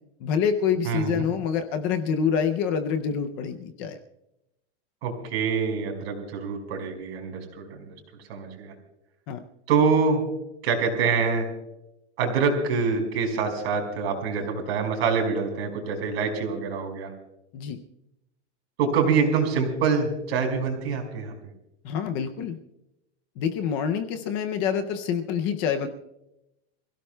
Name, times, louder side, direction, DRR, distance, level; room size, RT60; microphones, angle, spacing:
voice 1, 0.2-4.0 9.3-9.4 17.5-17.8 21.8-22.6 23.4-25.9, left 7 dB, 20° left, 7 dB, 0.4 m, -26 dB
voice 2, 0.8-1.2 5.0-7.9 8.3-8.7 9.7-10.2 10.6-11.5 12.2-17.1 18.8-21.3, right 5 dB, 65° right, 3 dB, 5.0 m, -25 dB
28.0 x 16.5 x 2.2 m, 0.88 s
supercardioid pair, 180°, 34 cm